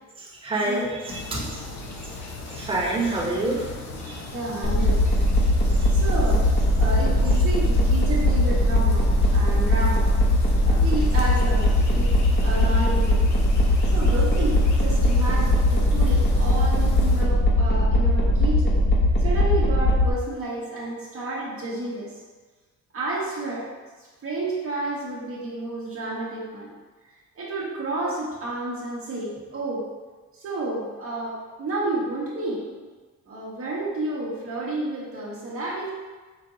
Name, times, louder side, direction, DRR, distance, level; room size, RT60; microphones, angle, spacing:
voice 1, 0.2-1.6 2.4-4.2 5.8-5.9, right 2 dB, 20° right, -5 dB, 1.2 m, -28 dB
sound 1, 1.0-17.2, left 4 dB, 65° left, 0.9 m, -36 dB
voice 2, 4.3-5.1 5.9-10.1 10.6-12.1 12.4-13.3 13.8-18.8 19.2-22.2 22.9-23.7 24.0-26.7 27.3-29.9 30.3-32.9 33.3-35.9, right 2 dB, 45° right, -5 dB, 1.1 m, -31 dB
sound 2, 4.6-20.1, left 1 dB, 35° left, 1.1 m, -20 dB
5.1 x 2.6 x 3.8 m, 1.3 s
cardioid pair, 90°, 30 cm